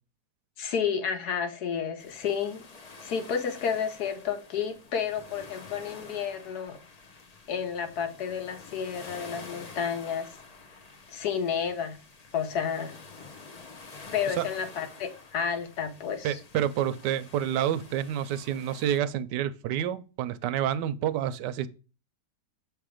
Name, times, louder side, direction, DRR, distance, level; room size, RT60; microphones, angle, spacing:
voice 1, 0.6-2.6 3.0-6.8 7.5-10.3 11.1-12.0 12.3-13.0 14.1-16.4, left 7 dB, 70° left, 1.3 m, -31 dB
sound 1, 2.0-19.0, left 4 dB, 45° left, 0.5 m, -48 dB
voice 2, 16.2-21.7, right 10 dB, 80° right, 1.2 m, -28 dB
6.7 x 3.4 x 4.9 m
omnidirectional pair, 1.8 m